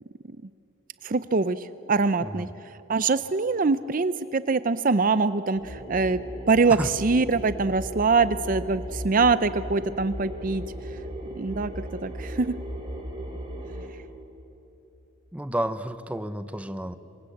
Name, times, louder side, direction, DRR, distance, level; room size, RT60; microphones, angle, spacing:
voice 1, 1.0-1.6 1.9-2.5 2.9-6.2 6.5-10.6 11.4-11.7 12.0-12.5, right 4 dB, 40° right, 14 dB, 0.5 m, -23 dB
sound 1, 5.6-13.9, equal, 25° right, 4.1 m, -36 dB
voice 2, 15.3-17.0, right 1 dB, 5° right, 11 dB, 0.8 m, -31 dB
27.0 x 25.0 x 8.5 m, 2.9 s
head